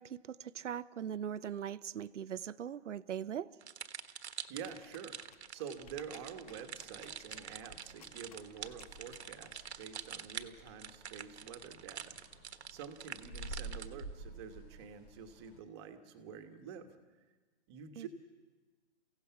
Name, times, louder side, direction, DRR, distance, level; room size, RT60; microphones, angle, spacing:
voice 1, 0.0-3.5 18.0-18.1, right 9 dB, 90° right, 16 dB, 0.7 m, -40 dB
sound 1, 3.6-14.0, right 8 dB, 65° right, 1.3 m, -46 dB
voice 2, 4.5-12.2 12.7-17.0 17.7-18.1, right 7 dB, 25° right, 6 dB, 1.3 m, -48 dB
sound 2, 4.6-10.0, left 6 dB, 30° left, 1.3 m, -60 dB
sound 3, 5.7-15.6, right 2 dB, 10° left, 0.5 m, -52 dB
29.5 x 16.5 x 5.8 m, 1.3 s
hypercardioid pair, 160°, 35 cm